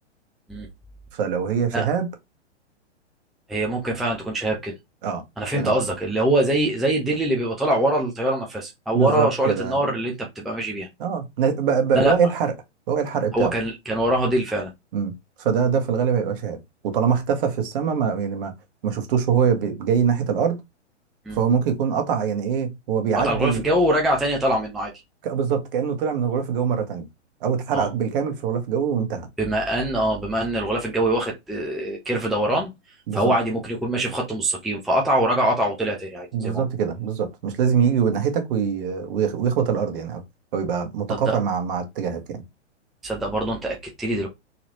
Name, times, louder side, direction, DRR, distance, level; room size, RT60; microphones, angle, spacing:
voice 1, 1.1-2.1 5.0-5.2 5.5-5.7 8.9-9.8 11.0-12.5 12.9-13.5 14.9-15.1 15.4-16.6 16.8-18.5 18.8-20.6 21.3-23.6 25.2-27.1 27.4-29.3 33.1-33.3 36.3-40.2 40.5-42.4, right 7 dB, 50° right, 1.4 m, -23 dB
voice 2, 3.5-4.7 5.4-10.9 11.9-12.2 13.3-14.7 21.3-21.4 23.2-24.9 27.7-27.9 29.4-32.7 33.1-36.6 41.1-41.4 43.0-44.3, right 1 dB, ahead, 0.5 m, -23 dB
4.0 x 3.0 x 2.9 m
figure-of-eight pair, 115°, 35 cm